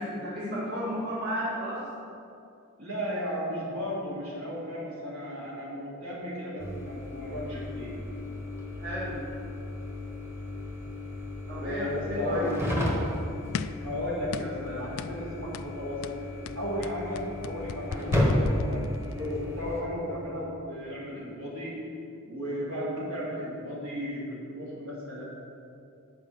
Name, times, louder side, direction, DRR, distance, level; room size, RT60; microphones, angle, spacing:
voice 1, 0.0-1.9 8.8-9.2 11.5-12.5, equal, 45° right, -8 dB, 2.2 m, -33 dB
voice 2, 2.8-7.9 11.6-12.5 13.8-16.0 16.6-18.8 19.2-21.8 22.2-25.2, equal, 65° right, -5 dB, 2.5 m, -34 dB
sound 1, 6.6-19.8, left 1 dB, 10° right, 1.2 m, -33 dB
sound 2, 13.5-13.9 14.3-14.6 15.0-15.2 15.5-15.7 16.0-19.4, left 6 dB, 65° left, 0.3 m, -36 dB
9.9 x 4.9 x 7.3 m, 2.6 s
head